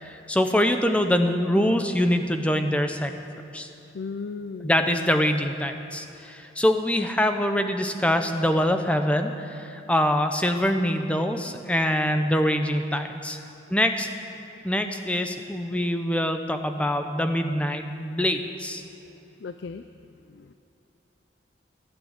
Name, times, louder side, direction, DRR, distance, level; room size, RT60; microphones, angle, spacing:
voice 1, 0.0-3.1 3.5-3.7 4.6-13.4 13.7-14.1 14.6-18.8, equal, 5° left, 6 dB, 0.7 m, -24 dB
voice 2, 3.9-5.0 19.4-19.8 20.3-20.5, left 4 dB, 70° left, 9 dB, 0.4 m, -36 dB
14.5 x 9.0 x 8.1 m, 2.9 s
head